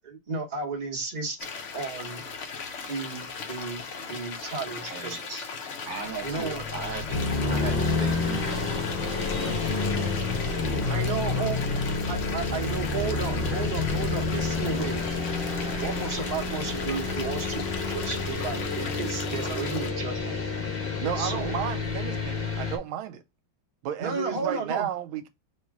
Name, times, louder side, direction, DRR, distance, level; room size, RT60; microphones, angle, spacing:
voice 1, 0.0-1.4 1.7-2.3 2.9-5.5 6.2-6.6 10.9-11.6 12.1-15.0 15.8-20.4 21.2-21.5 24.0-24.9, right 4 dB, 40° right, 0.6 m, -33 dB
sound 1, 1.4-19.9, left 5 dB, 85° left, 0.6 m, -38 dB
voice 2, 4.9-5.2 5.8-7.2 7.5-11.4 15.7-15.8, right 4 dB, 70° right, 0.9 m, -39 dB
sound 2, 5.9-20.8, left 3 dB, 55° left, 1.2 m, -37 dB
sound 3, 7.1-22.8, left 4 dB, 40° left, 0.8 m, -30 dB
voice 3, 21.0-23.2 23.8-25.3, right 10 dB, 85° right, 1.5 m, -32 dB
3.1 x 3.0 x 4.6 m
omnidirectional pair, 2.2 m